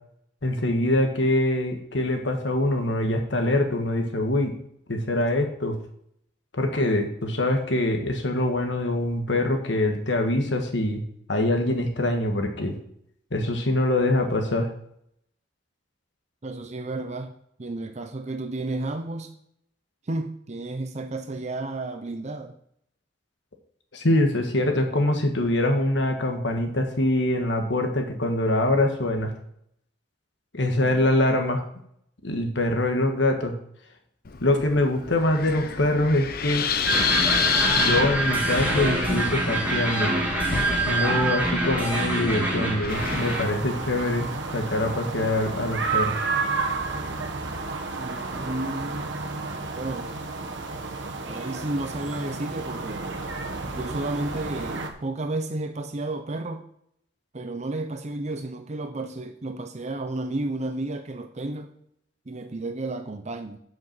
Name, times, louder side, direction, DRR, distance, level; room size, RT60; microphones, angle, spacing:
voice 1, 0.4-4.5 4.9-5.8 6.6-11.0 11.3-12.8 13.3-14.7 23.9-29.3 30.5-31.6 32.2-33.5 34.4-36.7 37.8-40.2 40.8-46.2, left 1 dB, 75° left, 4 dB, 1.5 m, -24 dB
voice 2, 16.4-17.3 17.6-19.3 20.0-22.6 30.8-30.9 48.0-49.1 49.7-50.1 51.2-53.1 53.5-56.6 57.3-61.7 62.3-63.6, right 2 dB, 40° right, 7 dB, 0.7 m, -32 dB
Wind, 34.2-44.4, left 6 dB, 55° left, 0.8 m, -29 dB
sound 1, 36.8-43.4, right 2 dB, 10° right, 2.4 m, -25 dB
sound 2, 42.9-54.9, right 3 dB, 75° right, 1.4 m, -31 dB
8.0 x 6.0 x 7.3 m, 0.71 s
head